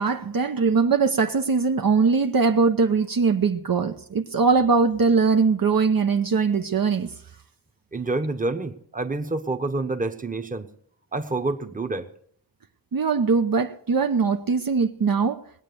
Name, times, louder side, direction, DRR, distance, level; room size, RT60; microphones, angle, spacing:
voice 1, 0.0-7.1 12.9-15.4, right 5 dB, 55° right, 0.8 m, -21 dB
voice 2, 7.9-10.7 11.1-12.1, right 2 dB, 20° right, 1.1 m, -28 dB
19.5 x 8.9 x 6.9 m
wide cardioid pair, 90°, 42 cm